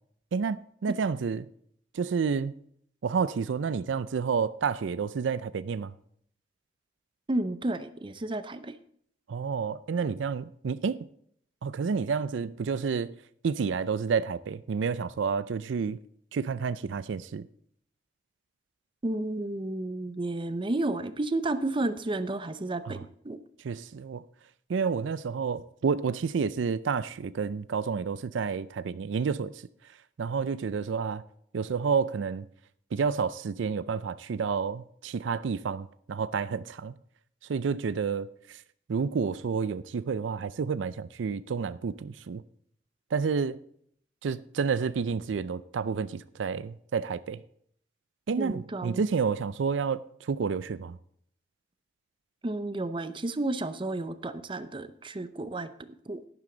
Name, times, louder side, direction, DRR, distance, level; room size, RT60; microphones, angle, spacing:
voice 1, 0.3-1.5 1.9-2.5 3.0-5.9 9.3-11.1 11.6-13.1 13.4-16.0 16.3-17.5 22.9-23.0 23.6-24.2 24.7-29.5 30.2-31.2 31.5-32.5 32.9-36.9 37.5-38.6 38.9-42.4 43.1-43.6 44.2-47.4 48.3-51.0, right 5 dB, 90° right, 0.4 m, -30 dB
voice 2, 7.3-8.7 19.0-23.0 23.2-23.4 48.4-49.0 52.4-55.7 56.1-56.2, right 2 dB, 25° right, 0.6 m, -31 dB
11.0 x 10.5 x 3.9 m
head